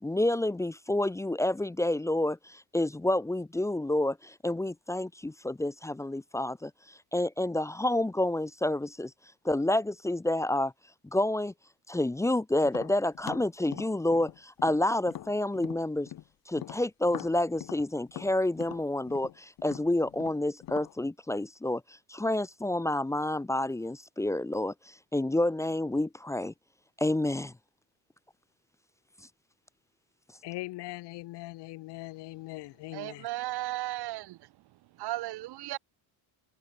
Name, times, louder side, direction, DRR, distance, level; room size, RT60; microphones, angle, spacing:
voice 1, 0.0-6.7 7.1-9.1 9.4-10.7 11.1-11.5 11.9-16.1 16.5-21.8 22.1-24.7 25.1-26.5 27.0-27.5, left 1 dB, 5° left, 0.9 m, -29 dB
Tap, 12.6-16.3 16.6-20.9, left 12 dB, 55° left, 7.8 m, -43 dB
voice 2, 30.4-33.3, left 19 dB, 90° left, 2.4 m, -41 dB
voice 3, 32.9-34.4 35.0-35.8, right 16 dB, 70° right, 2.4 m, -35 dB
cardioid pair, 155°, 40 cm